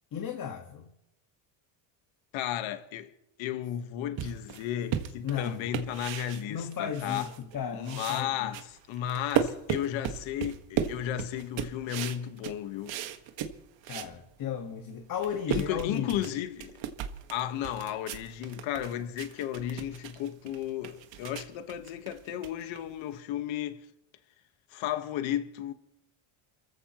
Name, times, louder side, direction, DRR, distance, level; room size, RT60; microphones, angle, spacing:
voice 1, 0.1-0.9 5.2-5.7 6.5-8.6 13.9-16.3, left 8 dB, 45° left, 1.7 m, -35 dB
voice 2, 2.3-3.1 3.4-7.3 7.7-13.0 15.5-16.8 17.3-23.9 24.7-25.7, left 11 dB, 70° left, 1.5 m, -34 dB
sound 1, 4.2-7.6 7.8-14.2 14.6-14.7 15.0-23.1, right 9 dB, 65° right, 1.8 m, -36 dB
29.5 x 15.0 x 3.1 m
supercardioid pair, 105°, 48 cm